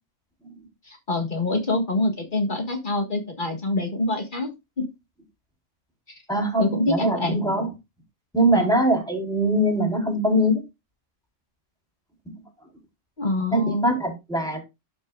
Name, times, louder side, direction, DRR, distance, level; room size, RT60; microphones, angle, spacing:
voice 1, 0.9-4.5 4.8-4.9 6.6-7.4 8.5-8.7 13.2-13.9, left 2 dB, 40° left, 3 dB, 1.9 m, -25 dB
voice 2, 6.3-7.7 8.3-10.6 13.5-14.6, right 1 dB, 5° left, -1 dB, 4.2 m, -22 dB
12.5 x 6.0 x 2.4 m, 0.23 s
omnidirectional pair, 1.3 m